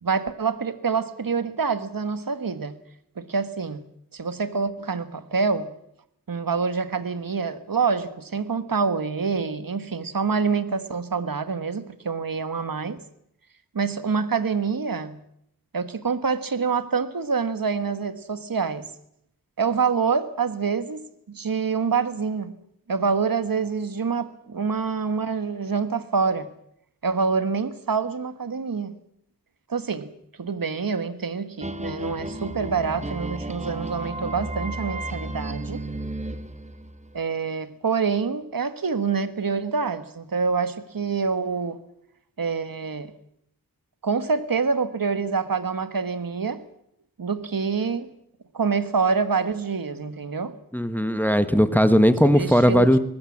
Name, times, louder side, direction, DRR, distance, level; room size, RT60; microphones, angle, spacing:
voice 1, 0.0-2.8 3.2-3.8 4.1-5.7 6.3-13.0 13.7-15.2 15.7-18.9 19.6-22.5 22.9-26.5 27.0-28.9 29.7-30.1 30.4-35.8 37.1-41.8 42.4-43.1 44.0-46.6 47.2-48.1 48.5-50.5 52.2-53.0, right 5 dB, 60° right, 1.4 m, -26 dB
sound 1, 31.6-37.2, right 1 dB, 20° right, 1.6 m, -33 dB
voice 2, 50.7-53.0, equal, 5° left, 1.4 m, -18 dB
24.0 x 19.5 x 7.3 m
wide cardioid pair, 75°, 38 cm